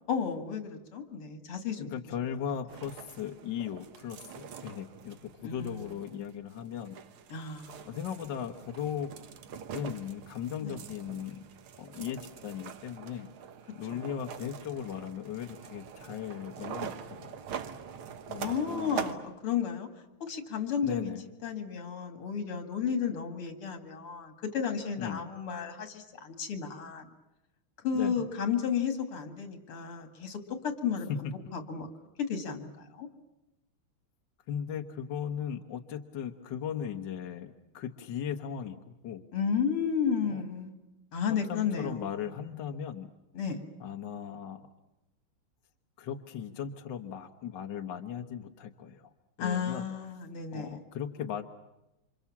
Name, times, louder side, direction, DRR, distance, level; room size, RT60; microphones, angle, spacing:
voice 1, 0.1-1.9 5.4-5.9 7.3-7.9 10.6-10.8 18.4-19.9 20.2-21.1 21.4-27.1 27.8-31.9 32.2-33.1 39.3-40.8 41.1-42.2 43.3-43.6 49.4-50.8, left 7 dB, 85° left, 7 dB, 3.2 m, -33 dB
voice 2, 1.8-7.0 7.9-9.1 9.7-11.5 11.8-13.3 13.8-17.4 18.3-19.0 20.8-21.2 25.0-25.2 27.9-28.2 34.5-39.2 40.3-40.4 41.3-43.1 43.8-44.6 46.0-49.1 49.4-49.9 50.5-51.4, left 8 dB, 60° left, 6 dB, 1.7 m, -37 dB
sound 1, 2.7-19.1, right 7 dB, 75° right, 2.0 m, -44 dB
28.5 x 26.0 x 7.2 m, 0.94 s
omnidirectional pair, 2.4 m